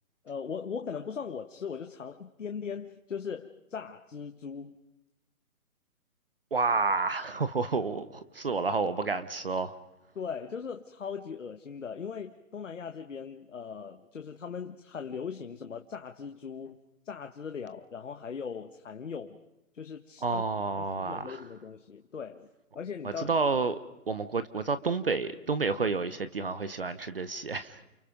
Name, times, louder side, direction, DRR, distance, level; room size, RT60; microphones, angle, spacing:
voice 1, 0.2-4.7 10.1-16.8 17.0-19.4 19.7-20.4 20.8-22.5 22.7-23.3, left 6 dB, 55° left, 6 dB, 1.6 m, -39 dB
voice 2, 6.5-9.8 20.2-21.4 23.0-23.8 24.1-27.8, right 4 dB, 40° right, 14 dB, 1.0 m, -30 dB
29.5 x 29.5 x 5.2 m, 0.91 s
hypercardioid pair, 175°, 44 cm